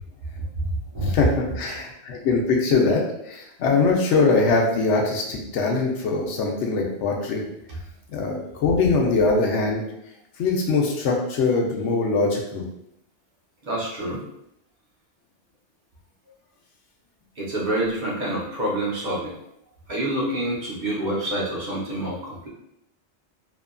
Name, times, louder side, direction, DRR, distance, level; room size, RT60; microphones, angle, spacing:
voice 1, 1.0-3.0 3.3-7.4 8.1-9.8 10.4-12.6, left 4 dB, 80° left, 0 dB, 0.9 m, -22 dB
voice 2, 13.6-14.2 17.4-19.3 19.9-22.5, right 1 dB, 45° right, -4 dB, 0.7 m, -27 dB
2.7 x 2.4 x 2.2 m, 0.80 s
omnidirectional pair, 1.2 m